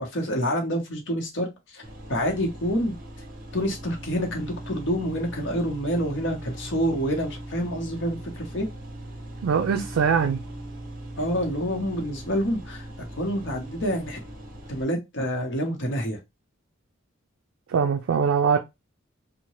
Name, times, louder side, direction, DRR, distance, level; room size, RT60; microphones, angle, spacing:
voice 1, 0.0-1.8 2.1-2.9 3.5-8.7 11.2-12.9 13.2-14.2 14.7-16.2, equal, 60° left, 0.8 m, -27 dB
sound 1, 1.8-14.8, right 1 dB, 45° right, 0.9 m, -40 dB
voice 2, 9.4-10.4 17.7-18.6, right 6 dB, 85° right, 0.4 m, -22 dB
2.8 x 2.1 x 3.0 m
head